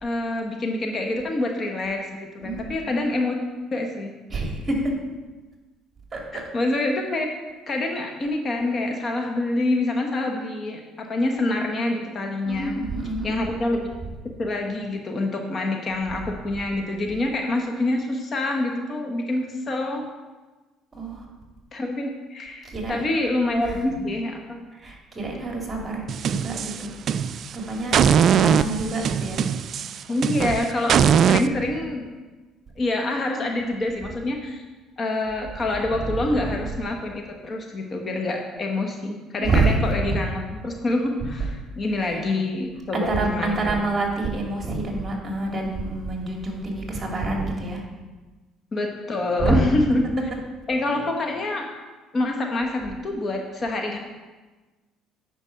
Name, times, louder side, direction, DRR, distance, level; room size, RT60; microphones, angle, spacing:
voice 1, 0.0-3.3 3.7-4.1 6.3-7.3 7.7-12.7 13.2-13.9 14.4-20.0 21.7-24.6 30.1-32.1 32.8-34.6 35.0-43.8 48.7-50.1 50.7-51.7 52.1-54.0, left 2 dB, 35° left, 2 dB, 1.2 m, -26 dB
voice 2, 2.4-2.7 4.3-5.0 6.1-6.4 12.5-13.4 20.9-21.3 22.6-23.0 23.6-24.1 24.7-26.9 27.5-28.0 28.3-29.4 36.0-36.5 39.4-40.2 42.0-42.3 42.9-47.8 49.4-49.6, right 2 dB, 25° right, 0 dB, 2.3 m, -27 dB
sound 1, 26.1-27.5 27.9-31.5, right 8 dB, 50° right, 0.3 m, -20 dB
8.9 x 5.3 x 5.8 m, 1.2 s
cardioid pair, 100°, 0 cm